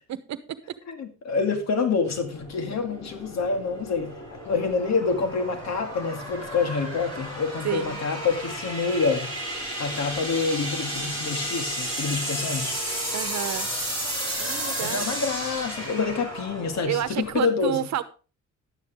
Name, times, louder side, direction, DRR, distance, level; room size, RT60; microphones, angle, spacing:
voice 1, 0.1-0.6 7.6-8.0 13.1-13.7 14.4-15.1 16.9-18.0, right 11 dB, 65° right, 1.1 m, -30 dB
voice 2, 0.9-4.2 4.4-9.4 9.8-12.8 14.8-17.8, left 4 dB, 65° left, 2.3 m, -27 dB
sound 1, 2.0-17.4, equal, 15° left, 6.8 m, -33 dB
11.5 x 9.1 x 3.7 m
cardioid pair, 90°, 30 cm